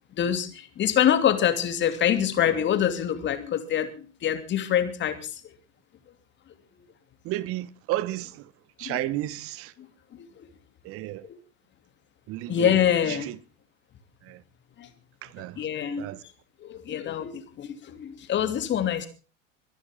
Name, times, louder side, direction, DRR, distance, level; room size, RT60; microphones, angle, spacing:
voice 1, 0.2-5.4 8.8-9.0 9.8-9.9 10.1-10.4 11.2-11.4 12.5-13.3 14.8-14.9 15.6-16.1 16.6-19.1, left 9 dB, 30° left, 2.7 m, -25 dB
voice 2, 7.2-8.5 8.8-9.7 10.8-11.3 12.3-12.8 13.1-13.4 14.2-14.4 15.2-15.7 16.0-16.2, right 15 dB, 35° right, 1.2 m, -32 dB
24.0 x 11.0 x 3.7 m
hypercardioid pair, 100°, 39 cm